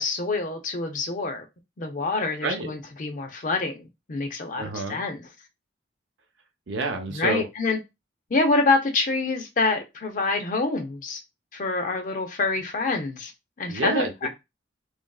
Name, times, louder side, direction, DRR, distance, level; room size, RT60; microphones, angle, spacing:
voice 1, 0.0-1.5 1.8-5.2 7.1-7.8 8.3-11.2 11.5-13.3 13.6-14.3, left 3 dB, 40° left, 0.5 m, -26 dB
voice 2, 4.6-5.0 6.7-7.5 13.7-14.3, right 3 dB, 70° right, 0.6 m, -28 dB
3.0 x 2.5 x 2.3 m
head